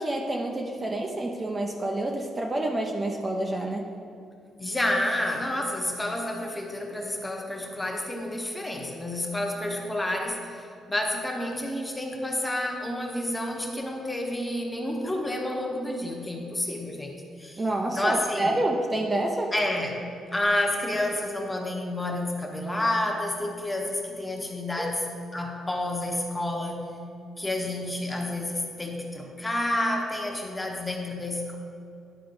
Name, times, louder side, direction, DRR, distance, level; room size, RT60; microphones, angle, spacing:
voice 1, 0.0-3.9 17.6-19.5 24.8-24.9, right 1 dB, 25° right, 1 dB, 0.7 m, -28 dB
voice 2, 4.6-17.6 17.9-18.6 19.5-20.0 20.3-25.1 25.3-26.9 27.4-31.5, left 1 dB, 15° left, 1 dB, 1.2 m, -29 dB
10.5 x 4.6 x 3.9 m, 2.5 s
cardioid pair, 90°, 0 cm